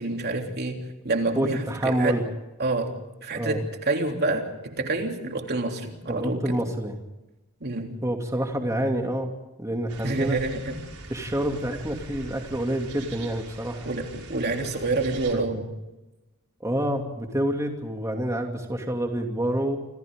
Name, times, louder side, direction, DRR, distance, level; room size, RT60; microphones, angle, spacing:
voice 1, 0.0-2.2 2.6-6.6 7.6-8.0 10.0-10.8 13.8-15.7, right 2 dB, 50° right, 3 dB, 3.3 m, -28 dB
voice 2, 1.3-2.2 3.3-3.6 6.1-7.0 8.0-9.3 9.6-10.4 11.1-13.9 16.6-19.8, right 1 dB, 15° right, 2 dB, 2.8 m, -27 dB
sound 1, 9.9-15.3, right 2 dB, 80° right, 5.3 m, -43 dB
29.0 x 27.0 x 3.8 m, 1.0 s
head